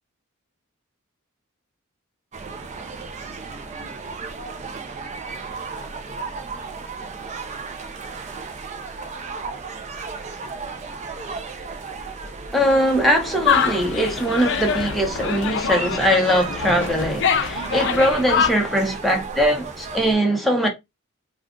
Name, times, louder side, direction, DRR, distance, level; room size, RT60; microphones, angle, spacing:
sound 1, 2.3-20.1, right 4 dB, 35° right, 0.5 m, -34 dB
voice 1, 12.5-20.7, equal, ahead, 0.8 m, -21 dB
sound 2, 13.4-18.5, left 6 dB, 60° left, 0.5 m, -24 dB
2.4 x 2.4 x 3.7 m
head